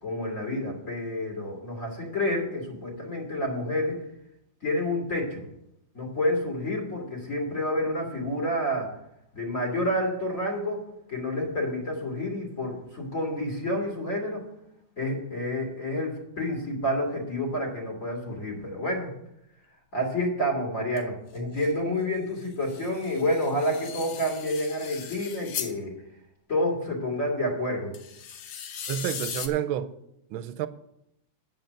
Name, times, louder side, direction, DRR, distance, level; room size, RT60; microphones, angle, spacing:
voice 1, 0.0-4.0 4.6-5.4 5.9-8.9 9.3-10.8 11.1-14.4 15.0-19.1 19.9-25.9 26.5-27.9, left 1 dB, 40° left, 3.2 m, -29 dB
sound 1, 21.0-21.1 21.4-21.7 22.4-25.7 27.9-29.5, left 8 dB, 70° left, 1.7 m, -38 dB
voice 2, 28.9-29.9 30.3-30.7, right 10 dB, 90° right, 1.5 m, -29 dB
8.9 x 7.9 x 6.6 m
omnidirectional pair, 2.2 m